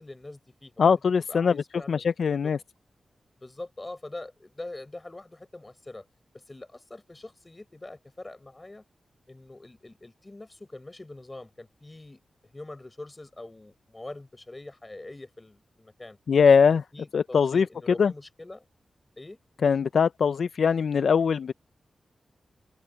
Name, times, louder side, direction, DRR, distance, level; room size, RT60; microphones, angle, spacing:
voice 1, 0.0-1.0 1.3-2.5 3.4-6.1 6.3-8.8 9.3-16.2 16.6-18.7 19.2-19.4, left 2 dB, 20° left, 5.9 m, -44 dB
voice 2, 0.8-1.6 1.9-2.6 16.3-16.8 17.1-17.7 18.0-18.1 19.6-21.5, left 6 dB, 70° left, 0.3 m, -21 dB
wide cardioid pair, 145°, 0 cm